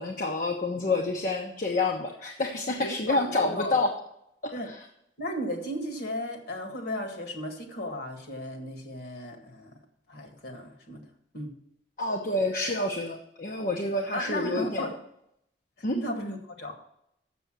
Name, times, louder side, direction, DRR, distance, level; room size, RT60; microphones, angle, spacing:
voice 1, 0.0-3.9 4.4-4.8 12.0-14.9 15.8-16.0, left 2 dB, 50° left, 2 dB, 0.8 m, -28 dB
voice 2, 2.8-3.8 4.5-4.7 5.2-9.7 10.1-11.0 11.3-11.5 14.1-15.0 15.9-16.7, equal, 65° left, 4 dB, 1.8 m, -35 dB
7.0 x 6.9 x 7.7 m, 0.77 s
head